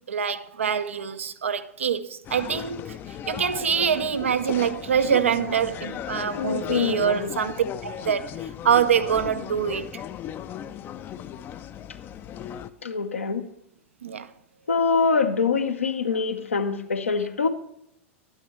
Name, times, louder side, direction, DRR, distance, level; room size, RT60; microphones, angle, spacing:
voice 1, 0.1-3.0 3.3-10.0 14.0-14.3, right 8 dB, 75° right, 0.5 m, -25 dB
sound 1, 2.2-12.7, left 10 dB, 30° left, 0.4 m, -36 dB
voice 2, 6.3-7.4 12.8-13.4 14.7-17.5, left 5 dB, 80° left, 0.8 m, -24 dB
11.5 x 8.9 x 3.1 m
figure-of-eight pair, 90°, 7 cm